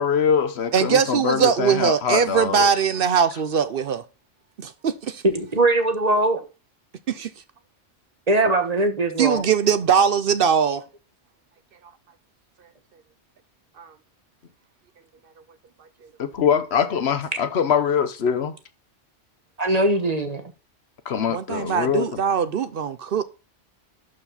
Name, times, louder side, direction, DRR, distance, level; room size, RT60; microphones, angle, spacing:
voice 1, 0.0-2.7 8.4-8.6 16.2-18.6 21.1-22.2, left 7 dB, 60° left, 1.1 m, -23 dB
voice 2, 0.7-4.0 4.6-5.2 7.1-7.3 9.2-10.8 13.8-13.9 21.3-23.2, right 7 dB, 60° right, 0.8 m, -21 dB
voice 3, 5.3-6.4 8.3-9.5 19.6-20.4, right 2 dB, 35° right, 1.3 m, -21 dB
11.5 x 4.8 x 4.1 m
omnidirectional pair, 1.2 m